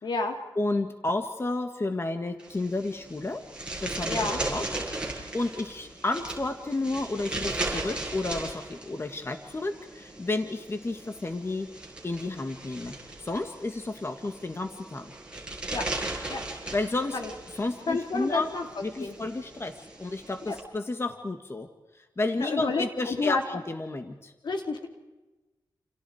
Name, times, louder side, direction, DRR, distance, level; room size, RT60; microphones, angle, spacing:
voice 1, 0.0-0.4 4.0-4.4 15.7-15.8 16.3-16.4 17.1-17.3 17.9-18.6 19.0-19.2 20.5-20.6 22.4-23.4 24.4-24.9, left 3 dB, 70° left, 4 dB, 3.5 m, -29 dB
voice 2, 0.6-3.4 3.8-5.0 5.3-11.7 12.0-15.1 16.7-17.2 17.5-18.5 18.8-21.7 21.9-24.3, left 2 dB, 30° left, 6 dB, 1.8 m, -31 dB
sound 1, 2.4-20.6, right 2 dB, 15° right, 7.5 m, -37 dB
29.5 x 29.0 x 4.9 m, 1.1 s
wide cardioid pair, 95°, 8 cm